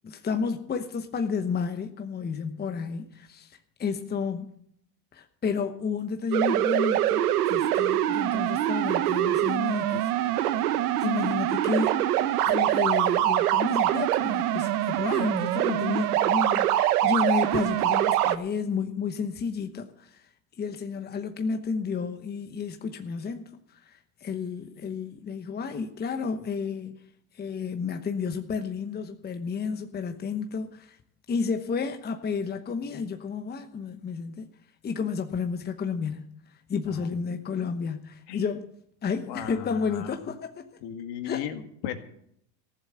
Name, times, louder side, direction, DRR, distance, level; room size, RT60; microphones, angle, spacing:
voice 1, 0.0-4.5 5.1-10.5 11.0-12.1 12.5-27.0 27.3-31.0 31.3-34.5 34.8-38.7 39.0-40.7 41.2-41.5, left 5 dB, 20° left, 1.0 m, -31 dB
sound 1, 6.3-18.4, right 13 dB, 85° right, 1.0 m, -24 dB
voice 2, 39.3-40.1 40.8-41.9, left 10 dB, 60° left, 2.1 m, -35 dB
15.0 x 7.3 x 8.0 m
supercardioid pair, 105°, 44 cm